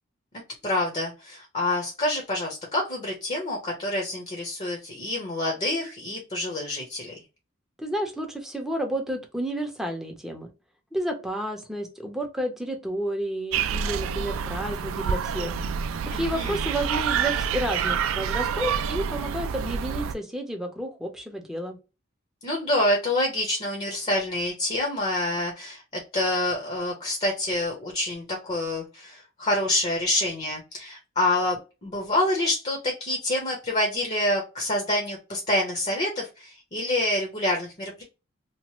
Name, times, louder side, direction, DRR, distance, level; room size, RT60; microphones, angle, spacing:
voice 1, 0.6-7.1 16.1-16.6 22.4-38.0, left 1 dB, 35° left, 0 dB, 0.9 m, -27 dB
voice 2, 7.8-10.5 10.9-21.8, right 1 dB, ahead, 2 dB, 0.7 m, -31 dB
sound 1, 13.5-20.1, right 7 dB, 80° right, 0.3 m, -28 dB
3.0 x 2.1 x 3.0 m, 0.29 s
head